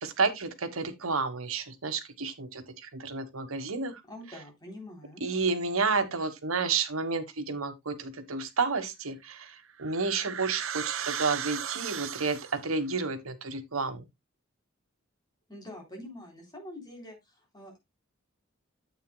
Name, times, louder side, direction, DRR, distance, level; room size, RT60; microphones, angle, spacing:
voice 1, 0.0-4.0 5.2-14.0, right 4 dB, 90° right, 1.4 m, -31 dB
voice 2, 4.1-5.2 15.5-17.8, left 1 dB, 20° left, 3.6 m, -45 dB
sound 1, 9.3-12.7, right 8 dB, 75° right, 0.8 m, -36 dB
9.4 x 8.3 x 2.3 m
head